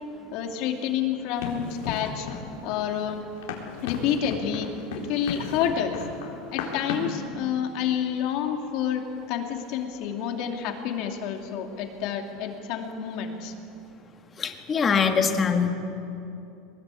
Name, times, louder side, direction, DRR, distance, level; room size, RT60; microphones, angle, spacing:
voice 1, 0.3-2.3 2.6-3.2 3.8-4.7 4.9-6.0 6.5-13.5, left 8 dB, 55° left, 3 dB, 2.7 m, -29 dB
Run, 1.4-7.2, left 5 dB, 90° left, 3.9 m, -36 dB
voice 2, 14.4-15.7, left 6 dB, 20° left, 5 dB, 1.6 m, -23 dB
22.5 x 20.5 x 8.4 m, 2.7 s
supercardioid pair, 165°, 0 cm